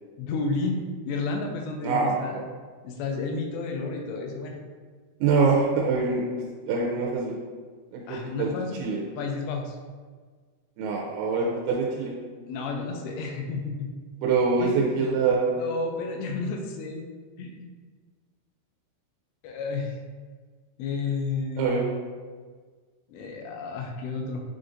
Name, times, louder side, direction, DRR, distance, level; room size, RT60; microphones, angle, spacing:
voice 1, 0.2-2.4 2.8-4.6 8.1-8.9 9.2-9.8 12.5-13.9 14.6-15.1 15.6-17.1 17.4-17.7 19.4-20.0 20.8-21.8 23.1-24.4, left 4 dB, 85° left, 2 dB, 2.6 m, -31 dB
voice 2, 1.8-2.4 5.2-6.2 6.7-7.3 7.9-8.5 8.8-9.0 10.8-12.1 14.2-15.5 21.6-21.8, right 4 dB, 90° right, -1 dB, 2.9 m, -24 dB
7.5 x 2.5 x 2.5 m, 1.5 s
omnidirectional pair, 5.3 m